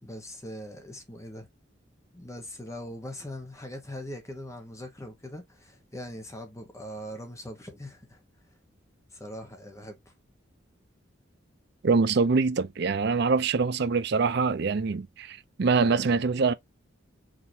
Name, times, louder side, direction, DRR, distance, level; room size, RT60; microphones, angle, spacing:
voice 1, 0.0-1.5 2.1-8.2 9.1-10.1, left 1 dB, 15° left, 1.1 m, -41 dB
voice 2, 11.8-16.5, right 4 dB, 60° right, 0.5 m, -24 dB
5.1 x 2.9 x 2.7 m
head